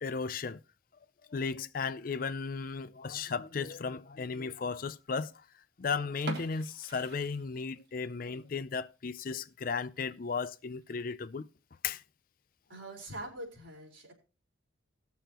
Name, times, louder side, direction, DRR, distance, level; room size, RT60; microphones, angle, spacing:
voice 1, 0.0-0.6 1.3-5.3 5.8-11.5 11.8-12.0, left 5 dB, 45° left, 0.4 m, -35 dB
sound 1, 6.1-8.0 8.4-8.5 9.0-9.2 9.6-9.7 10.0-10.1 10.8-11.1, right 1 dB, 55° right, 1.6 m, -43 dB
voice 2, 12.7-14.1, right 1 dB, 80° right, 4.0 m, -43 dB
18.5 x 7.0 x 2.9 m
head